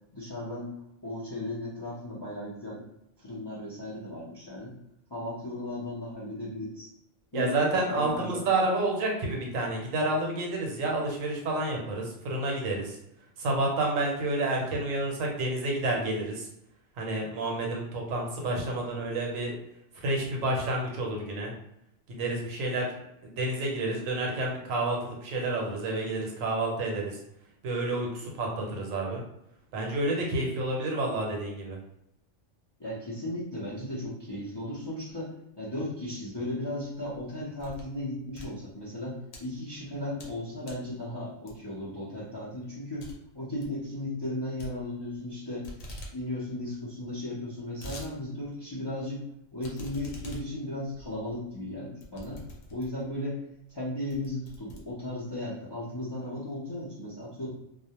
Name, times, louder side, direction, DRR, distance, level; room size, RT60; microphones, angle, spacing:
voice 1, 0.1-0.7 1.0-2.8 3.2-4.7 5.1-6.9 7.3-7.6 7.9-8.4 32.8-43.1 43.3-45.7 46.1-49.2 49.5-52.4 52.7-53.4 53.7-57.5, left 1 dB, 35° left, -8 dB, 0.4 m, -36 dB
voice 2, 7.3-13.0 13.4-16.5 17.0-19.5 19.9-21.5 22.1-22.9 23.2-27.2 27.6-29.2 29.7-31.8, right 2 dB, 80° right, 0 dB, 1.1 m, -29 dB
sound 1, 37.1-38.0 38.3-39.4 39.9-40.4 40.6-40.9 41.5-41.8 42.2-42.3 42.6-42.7 43.0-43.2 43.4-43.8 44.6-45.3 45.6-46.2 46.5-46.6 46.7-46.8 47.4-48.1 48.5-48.6 49.6-53.1 53.7-53.8 54.1-55.4, left 1 dB, 85° left, 1.1 m, -44 dB
2.3 x 2.1 x 2.8 m, 0.82 s
omnidirectional pair, 1.4 m